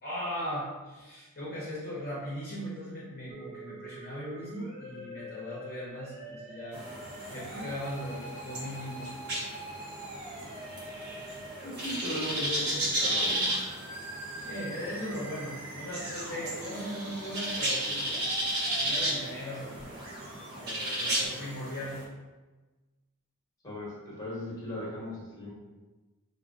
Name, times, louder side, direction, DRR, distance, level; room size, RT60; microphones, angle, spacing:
voice 1, 0.0-6.8 7.3-9.1 14.4-18.1 18.7-19.6 20.5-22.0, equal, 40° left, -8 dB, 0.7 m, -38 dB
Musical instrument, 3.3-21.3, right 1 dB, 25° right, 0.4 m, -45 dB
sound 1, 6.7-22.0, right 1 dB, 45° right, 0.8 m, -34 dB
voice 2, 11.6-13.4 23.6-25.5, left 1 dB, 15° left, -7 dB, 1.2 m, -37 dB
4.7 x 2.1 x 2.5 m, 1.2 s
head